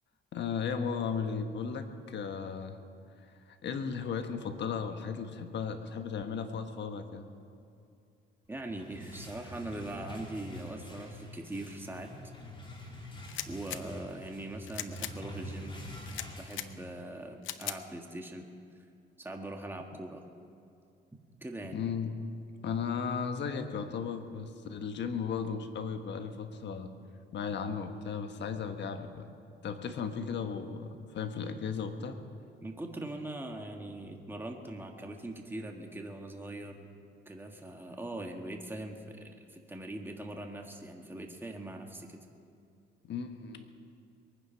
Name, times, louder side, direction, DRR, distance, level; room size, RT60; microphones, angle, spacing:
voice 1, 0.3-2.8 3.5-7.2 21.6-22.3 22.6-26.9 27.3-29.3 29.6-32.2 43.1-43.7, left 6 dB, 65° left, 7 dB, 1.3 m, -35 dB
sound 1, 8.5-17.2, left 1 dB, 25° left, 2.9 m, -46 dB
voice 2, 8.5-12.1 13.5-15.8 16.4-18.4 19.2-20.2 21.4-21.8 32.6-36.9 37.3-42.2, right 1 dB, 10° right, 2 dB, 1.7 m, -41 dB
sound 2, 13.2-13.8 14.6-15.1 16.1-16.7 17.4-17.8, left 12 dB, 80° left, 0.7 m, -39 dB
22.5 x 9.9 x 5.8 m, 2.5 s
cardioid pair, 90°, 20 cm